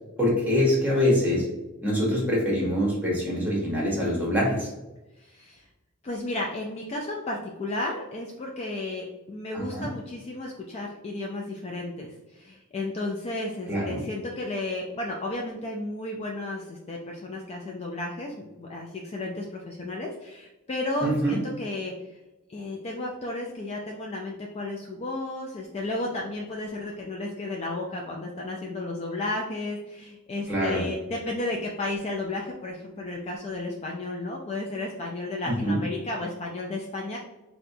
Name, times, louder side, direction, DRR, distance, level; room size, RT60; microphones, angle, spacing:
voice 1, 0.2-1.4 1.8-4.7 9.5-9.9 13.7-14.0 21.0-21.3 30.5-30.8 35.6-35.8, equal, 10° right, -4 dB, 1.1 m, -24 dB
voice 2, 5.2-5.6 6.0-21.9 22.5-37.2, left 2 dB, 30° left, -1 dB, 0.3 m, -33 dB
4.2 x 2.2 x 2.6 m, 1.0 s
head